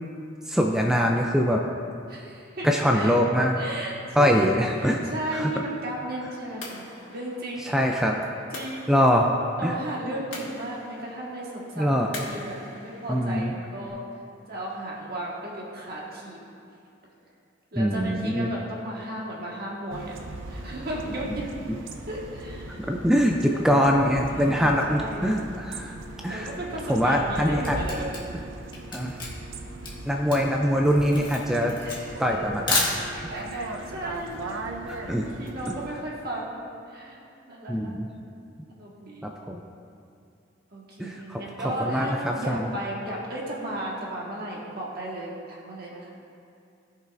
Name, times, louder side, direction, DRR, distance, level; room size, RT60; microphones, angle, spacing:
voice 1, 0.5-1.6 2.6-3.6 4.1-5.0 5.3-5.5 7.6-8.2 8.9-9.3 9.6-9.8 11.8-12.1 13.1-13.5 17.7-18.5 22.9-26.0 26.2-26.5 26.9-27.8 28.9-29.2 30.1-31.7 32.2-32.9 33.2-33.3 34.9-35.3 35.7-35.8 37.7-38.1 39.2-39.6 41.0-42.7, equal, 5° right, 1 dB, 0.4 m, -23 dB
voice 2, 2.1-3.1 3.6-3.9 4.2-4.5 4.8-7.8 8.5-9.1 9.6-14.0 14.5-16.4 17.7-20.1 20.5-21.5 22.1-22.8 23.5-23.9 24.3-25.3 26.3-28.3 31.8-32.4 33.1-34.8 35.2-37.2 37.5-38.0 38.7-39.3 40.7-46.1, right 1 dB, 55° right, -4 dB, 1.5 m, -35 dB
sound 1, 5.6-13.9, left 2 dB, 80° left, 1.8 m, -44 dB
sound 2, 19.9-35.9, right 2 dB, 85° right, 0.6 m, -39 dB
Camera, 27.6-33.4, left 3 dB, 25° left, 1.5 m, -31 dB
16.5 x 5.5 x 2.5 m, 2.5 s
head